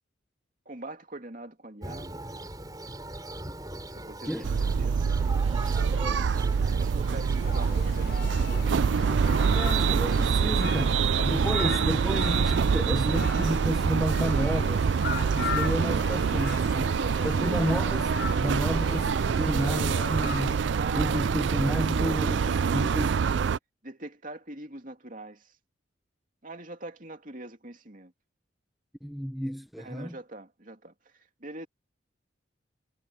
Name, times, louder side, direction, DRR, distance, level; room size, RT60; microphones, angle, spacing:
voice 1, 0.6-2.2 3.9-5.0 5.8-8.6 10.7-11.0 16.7-17.6 20.7-21.4 22.1-22.9 23.8-25.6 26.4-28.1 29.8-31.7, right 2 dB, 45° right, 2.9 m, -43 dB
Thunder, 1.8-10.4, right 2 dB, 20° right, 5.8 m, -41 dB
voice 2, 4.3-4.6 9.5-11.0 11.2-14.9 15.3-16.9 17.2-20.6 20.9-22.4 22.7-23.1 29.0-30.2, equal, ahead, 0.8 m, -31 dB
sound 1, 4.4-23.6, right 6 dB, 65° right, 0.4 m, -25 dB
sound 2, 7.4-20.6, left 6 dB, 55° left, 0.7 m, -38 dB
head